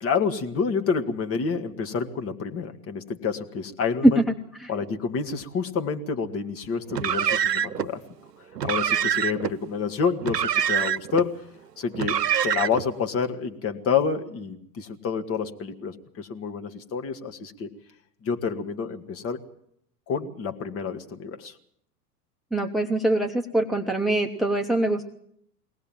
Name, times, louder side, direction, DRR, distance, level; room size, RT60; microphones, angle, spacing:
voice 1, 0.0-4.2 4.7-8.0 8.6-11.4 11.8-17.7 18.2-19.4 20.1-21.6, left 5 dB, 30° left, 6 dB, 1.9 m, -28 dB
Car, 6.9-7.9 8.5-9.5 10.2-11.2 11.9-12.9, right 9 dB, 80° right, 0.8 m, -25 dB
voice 2, 22.5-25.1, right 1 dB, ahead, 5 dB, 1.0 m, -22 dB
22.5 x 18.0 x 7.5 m, 0.69 s
figure-of-eight pair, 100°, 47 cm